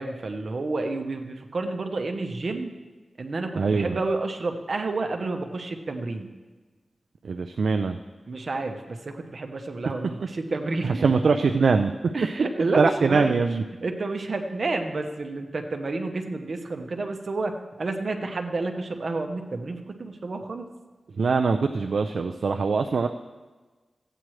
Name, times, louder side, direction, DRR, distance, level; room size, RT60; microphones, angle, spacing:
voice 1, 0.0-2.7 3.2-6.3 8.3-11.1 12.1-13.4 13.8-20.7, right 3 dB, 60° right, 5 dB, 1.0 m, -30 dB
voice 2, 3.6-4.0 7.2-8.0 10.8-11.9 12.8-13.6 21.2-23.1, right 4 dB, 80° right, 6 dB, 0.4 m, -22 dB
14.5 x 8.9 x 3.2 m, 1.3 s
wide cardioid pair, 85°, 0 cm